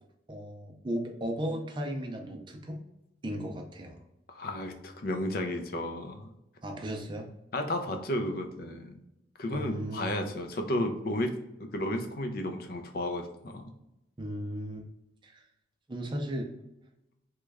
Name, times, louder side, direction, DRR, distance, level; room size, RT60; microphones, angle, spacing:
voice 1, 0.3-2.8 3.2-4.0 6.6-7.3 9.5-10.2 14.2-14.8 15.2-15.4 15.9-16.5, equal, 25° right, 3 dB, 0.5 m, -35 dB
voice 2, 4.3-6.3 7.5-9.0 9.4-11.3 11.6-13.7, left 1 dB, 50° left, 5 dB, 0.5 m, -33 dB
3.1 x 2.3 x 3.4 m, 0.88 s
head